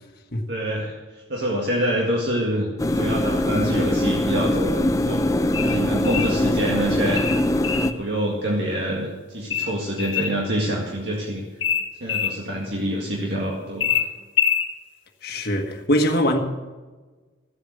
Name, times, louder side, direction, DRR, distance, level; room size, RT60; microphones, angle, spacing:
voice 1, 0.5-7.3 7.8-11.4 12.0-14.0, equal, 60° right, 2.0 m, -26 dB
sound 1, 2.8-7.9, left 1 dB, 15° left, 0.5 m, -22 dB
sound 2, 5.5-6.4 7.2-7.9 9.5-10.4 11.6-12.4 13.8-14.7, left 8 dB, 80° left, 1.6 m, -24 dB
voice 2, 15.2-16.4, equal, 55° left, 1.5 m, -22 dB
14.5 x 8.4 x 6.7 m
head